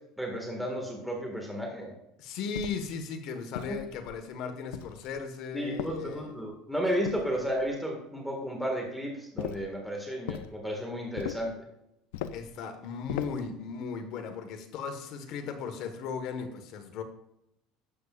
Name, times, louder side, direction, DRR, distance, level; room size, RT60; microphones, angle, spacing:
voice 1, 0.2-1.9 3.7-3.8 5.5-11.5, equal, ahead, 0 dB, 2.0 m, -33 dB
voice 2, 2.2-6.3 7.3-7.4 12.3-17.0, left 5 dB, 65° left, 6 dB, 1.5 m, -37 dB
sound 1, 2.5-3.0 3.5-4.2 4.7-5.2 5.8-6.4 7.0-7.7 9.4-9.7 10.3-10.5 11.2-11.6 12.1-12.5 13.1-13.5, left 10 dB, 90° left, 0.5 m, -39 dB
12.0 x 8.5 x 2.5 m, 0.82 s
supercardioid pair, 115°, 0 cm